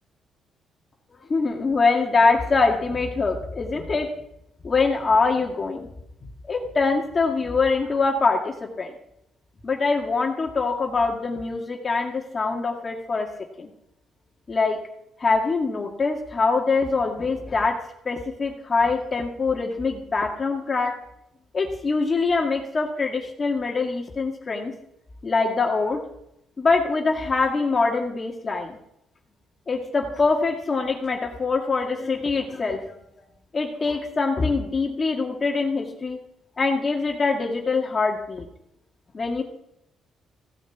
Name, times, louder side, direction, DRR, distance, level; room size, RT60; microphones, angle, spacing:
voice 1, 1.3-4.1 4.6-5.9 6.4-8.9 9.6-13.3 13.6-13.7 14.5-14.8 15.2-17.8 18.1-20.9 21.5-24.7 25.2-26.0 26.6-28.8 29.7-33.0 33.5-36.2 36.6-38.4 39.1-39.4, left 4 dB, 35° left, 1 dB, 2.1 m, -23 dB
16.0 x 6.6 x 8.0 m, 0.80 s
cardioid pair, 90°, 0 cm